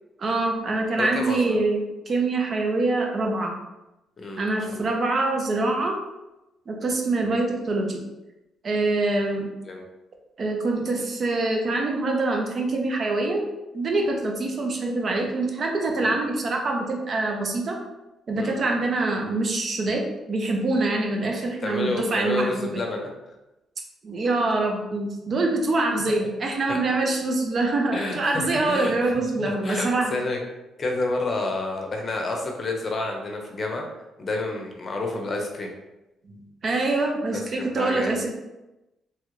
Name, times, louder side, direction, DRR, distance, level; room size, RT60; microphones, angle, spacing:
voice 1, 0.2-3.6 4.4-6.0 6.7-8.0 8.6-9.5 10.4-13.5 13.7-17.8 18.3-22.8 24.0-30.1 36.3-36.4 36.6-38.3, right 2 dB, 45° right, 2 dB, 0.6 m, -25 dB
voice 2, 1.0-1.6 4.2-4.4 4.7-4.9 7.2-7.4 9.6-9.8 16.0-16.2 18.4-18.5 21.6-23.1 26.7-26.8 27.9-29.1 29.4-30.4 30.8-33.8 34.2-35.7 37.3-38.2, left 2 dB, 40° left, 1 dB, 0.7 m, -29 dB
3.1 x 2.3 x 3.1 m, 0.98 s
cardioid pair, 90°, 0 cm